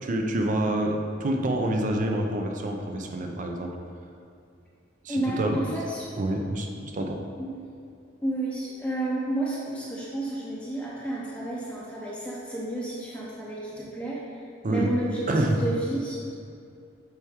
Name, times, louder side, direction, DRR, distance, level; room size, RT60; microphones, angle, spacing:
voice 1, 0.0-3.8 5.0-5.8 6.2-7.2 14.6-14.9 15.3-15.6, right 1 dB, 40° right, 3 dB, 0.6 m, -27 dB
voice 2, 5.1-6.1 7.4-7.5 8.2-16.3, right 1 dB, 5° left, -6 dB, 0.7 m, -31 dB
7.5 x 4.5 x 3.6 m, 2.4 s
head